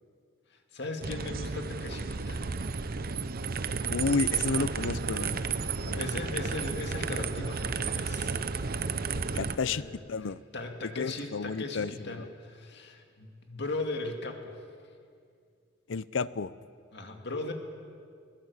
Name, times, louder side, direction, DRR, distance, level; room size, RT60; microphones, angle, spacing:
voice 1, 0.5-2.5 5.6-8.4 9.7-9.9 10.2-14.6 16.9-17.5, left 2 dB, 65° left, 4 dB, 2.2 m, -38 dB
sound 1, 1.0-9.6, right 5 dB, 50° right, 0.7 m, -32 dB
voice 2, 3.9-5.4 5.9-6.1 9.3-9.8 10.1-10.4 11.0-12.3 15.9-16.5, left 4 dB, 80° left, 18 dB, 0.6 m, -31 dB
21.5 x 16.0 x 8.2 m, 2.2 s
head